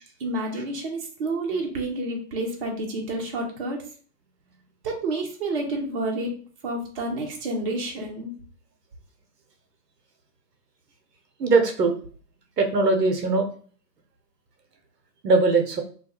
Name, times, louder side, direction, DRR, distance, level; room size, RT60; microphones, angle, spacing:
voice 1, 0.2-3.8 4.8-6.3 6.6-8.3, right 2 dB, 35° right, 1 dB, 0.6 m, -29 dB
voice 2, 11.4-12.0 12.6-13.5 15.2-15.8, right 3 dB, 75° right, 3 dB, 0.7 m, -20 dB
2.2 x 2.2 x 2.8 m, 0.43 s
figure-of-eight pair, 115°, 49 cm